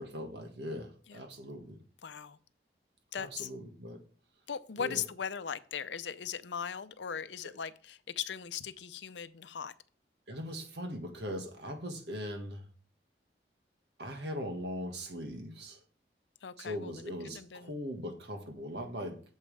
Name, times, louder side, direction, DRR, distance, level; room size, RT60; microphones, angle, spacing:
voice 1, 0.0-1.8 3.2-4.0 4.8-5.0 7.4-7.5 10.3-12.6 14.0-15.8 16.6-19.2, equal, 75° right, 5 dB, 1.6 m, -40 dB
voice 2, 2.0-2.4 3.1-3.5 4.5-9.7 16.4-16.9 17.2-17.7, left 7 dB, 90° left, 14 dB, 0.6 m, -39 dB
8.8 x 7.4 x 3.3 m, 0.40 s
head